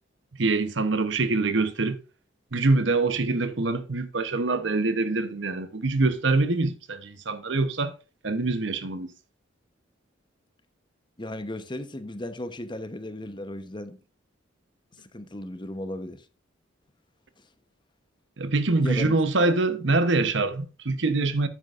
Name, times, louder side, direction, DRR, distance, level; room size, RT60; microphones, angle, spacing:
voice 1, 0.4-2.0 2.5-7.9 8.2-9.1 18.4-21.5, right 3 dB, 65° right, 1.0 m, -24 dB
voice 2, 11.2-14.0 15.0-16.3 17.4-17.5 18.8-19.2 19.4-19.5, left 1 dB, 25° left, 1.0 m, -35 dB
9.9 x 8.7 x 2.5 m
head